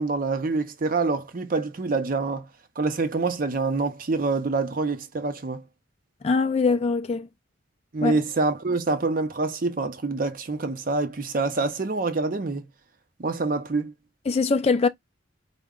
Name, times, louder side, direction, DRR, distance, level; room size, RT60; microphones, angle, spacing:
voice 1, 0.0-2.5 2.8-5.6 7.9-12.7 13.2-13.9, right 3 dB, 45° right, 0.5 m, -26 dB
voice 2, 6.2-7.3 8.0-8.1 14.3-14.9, left 4 dB, 30° left, 0.3 m, -22 dB
4.5 x 2.1 x 3.5 m
head